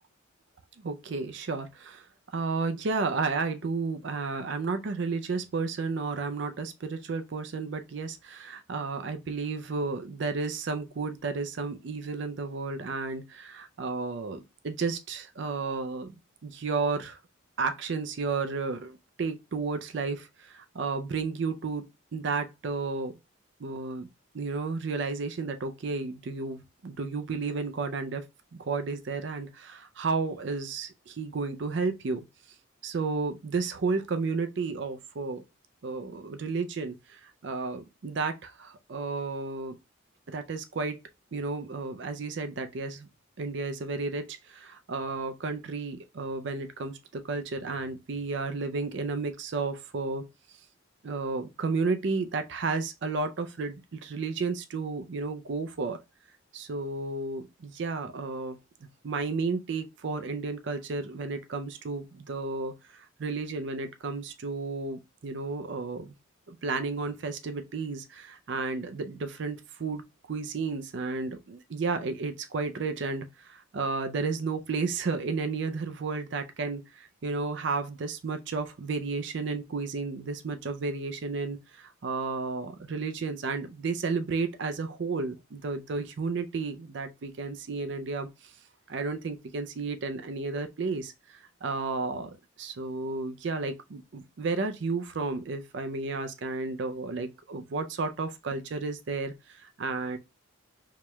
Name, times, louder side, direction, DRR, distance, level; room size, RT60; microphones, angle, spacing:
voice 1, 0.8-2.1 2.3-16.1 16.4-17.2 17.6-21.8 22.1-23.1 23.6-24.1 24.3-28.2 28.5-32.2 32.8-35.4 35.8-39.8 40.3-41.0 41.3-43.1 43.4-50.2 51.0-56.0 56.5-58.6 59.0-66.1 66.5-88.5 88.9-100.2, right 4 dB, 55° right, 0.4 m, -32 dB
4.7 x 3.0 x 2.2 m
head